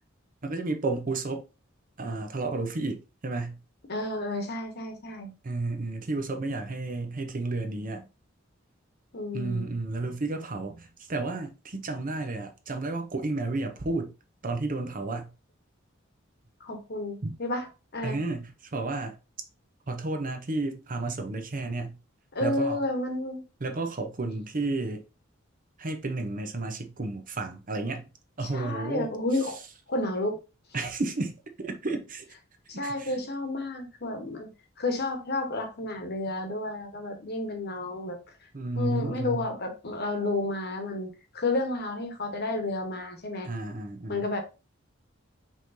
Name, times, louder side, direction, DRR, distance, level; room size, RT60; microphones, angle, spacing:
voice 1, 0.4-1.4 2.0-3.6 5.4-8.1 9.3-14.1 14.4-15.3 17.2-17.4 18.0-19.1 19.9-21.9 22.4-22.8 23.6-25.0 25.8-28.0 28.4-29.1 30.7-32.2 32.7-33.2 38.5-39.5 43.4-44.3, right 2 dB, 45° right, 0.7 m, -32 dB
voice 2, 3.9-5.3 9.1-9.8 16.6-18.2 22.3-23.4 28.4-29.6 29.9-30.4 32.7-34.5 34.8-38.2 38.7-43.5 44.1-44.4, left 2 dB, 55° left, 1.1 m, -31 dB
5.5 x 3.2 x 2.7 m
head